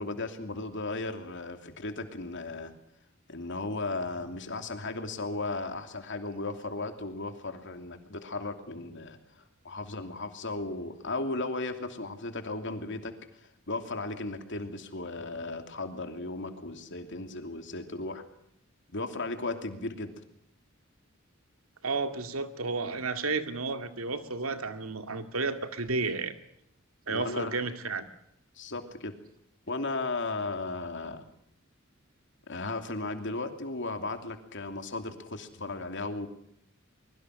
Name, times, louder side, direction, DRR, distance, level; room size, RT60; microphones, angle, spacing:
voice 1, 0.0-2.7 3.3-9.2 9.6-13.1 13.7-18.2 18.9-20.1 27.1-27.6 28.6-29.1 29.7-31.2 32.5-36.3, left 2 dB, 60° left, 7 dB, 2.9 m, -35 dB
voice 2, 21.8-26.3 27.1-28.0, right 3 dB, 85° right, 8 dB, 2.2 m, -32 dB
24.0 x 22.0 x 6.5 m, 0.74 s
head